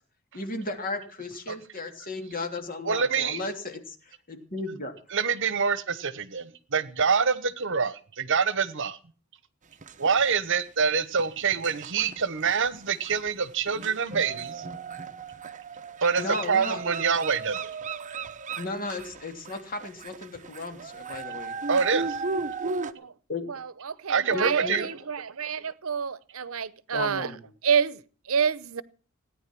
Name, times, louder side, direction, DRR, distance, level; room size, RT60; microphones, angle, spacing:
voice 1, 0.3-4.9 16.2-16.9 18.6-21.5 23.3-23.4 24.3-24.8 26.9-27.4, left 2 dB, 45° left, 3.0 m, -35 dB
voice 2, 2.8-3.4 5.1-9.0 10.0-14.6 16.0-17.7 21.7-22.2 24.1-24.9, right 6 dB, 60° right, 1.2 m, -26 dB
sound 1, 9.8-10.8 11.2-22.9, right 4 dB, 35° right, 1.0 m, -36 dB
voice 3, 23.5-27.3 27.6-28.8, right 6 dB, 80° right, 0.8 m, -28 dB
17.5 x 10.0 x 6.1 m
head